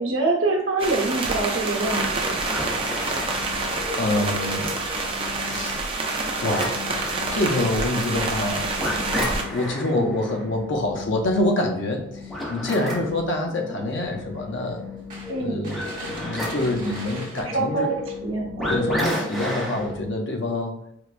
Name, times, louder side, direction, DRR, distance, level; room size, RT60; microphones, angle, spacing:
voice 1, 0.0-2.6 9.9-10.1 15.3-15.6 17.4-18.0 18.2-18.8, right 3 dB, 90° right, 0 dB, 0.8 m, -25 dB
sound 1, 0.8-9.4, right 3 dB, 25° right, 0.4 m, -27 dB
sound 2, 2.4-20.1, left 1 dB, ahead, 0.9 m, -33 dB
voice 2, 4.0-4.8 5.5-5.8 6.4-6.8 7.3-8.7 9.5-12.2 12.5-14.8 15.4-17.9 18.7-20.8, left 1 dB, 65° left, 2 dB, 0.6 m, -26 dB
sound 3, 9.9-10.0 10.7-10.8 11.3-11.4 12.1-12.7 13.1-13.5 13.8-13.9 14.4-14.6 15.1-17.4, right 2 dB, 45° right, 1.1 m, -41 dB
4.5 x 2.2 x 2.4 m, 0.74 s
head